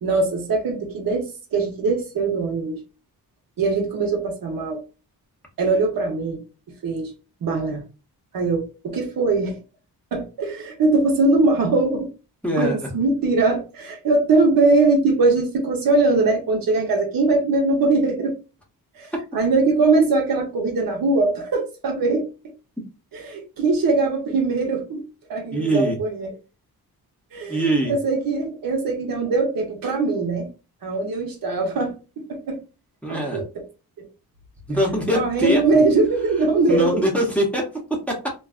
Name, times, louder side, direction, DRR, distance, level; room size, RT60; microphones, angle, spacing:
voice 1, 0.0-2.8 3.6-4.8 5.6-6.4 6.8-7.1 7.4-7.8 8.3-9.6 10.1-12.1 12.6-18.4 19.0-22.3 23.1-25.0 25.3-26.3 27.3-30.5 30.8-32.6 33.1-33.4 34.0-34.1 35.1-37.0, right 3 dB, 65° right, 0.9 m, -21 dB
voice 2, 12.4-12.9 25.5-26.0 27.5-27.9 33.0-33.4 34.7-35.6 36.7-38.3, right 1 dB, 5° left, 0.8 m, -22 dB
2.5 x 2.2 x 2.4 m
cardioid pair, 100°, 38 cm